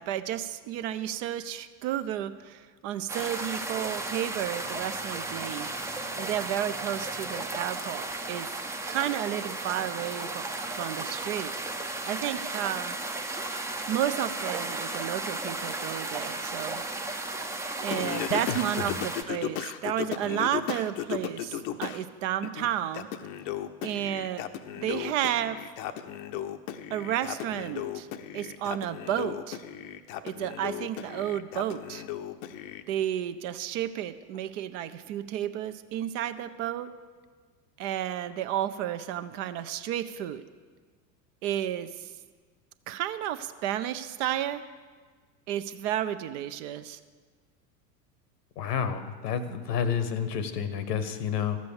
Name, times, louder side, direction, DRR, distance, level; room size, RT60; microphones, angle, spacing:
voice 1, 0.0-5.7 6.2-8.5 8.9-11.5 12.0-13.0 13.5-16.8 17.8-23.1 23.8-24.5 24.8-25.6 26.9-28.1 28.3-29.6 30.2-32.0 32.9-36.9 37.8-40.4 41.4-42.1 42.9-44.6 45.5-47.0, right 11 dB, 50° right, 11 dB, 0.7 m, -32 dB
sound 1, 3.1-19.2, right 2 dB, 5° right, 0.5 m, -34 dB
Singing, 17.9-22.0 22.4-32.8, left 10 dB, 50° left, 0.8 m, -36 dB
voice 2, 18.4-19.0 48.6-51.6, left 7 dB, 70° left, 12 dB, 1.2 m, -30 dB
13.0 x 7.6 x 7.0 m, 1.5 s
figure-of-eight pair, 85°, 50 cm